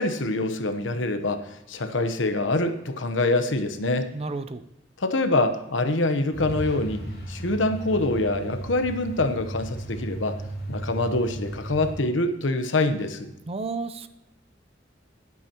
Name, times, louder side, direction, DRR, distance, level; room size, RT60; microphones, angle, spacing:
voice 1, 0.0-4.1 5.0-10.4 10.7-13.3, left 2 dB, 80° left, 9 dB, 1.0 m, -25 dB
voice 2, 4.1-4.6 13.5-14.1, right 3 dB, 30° right, 11 dB, 0.5 m, -31 dB
Truck, 6.3-12.0, right 1 dB, 55° left, 2.9 m, -35 dB
19.0 x 8.3 x 3.0 m, 0.91 s
head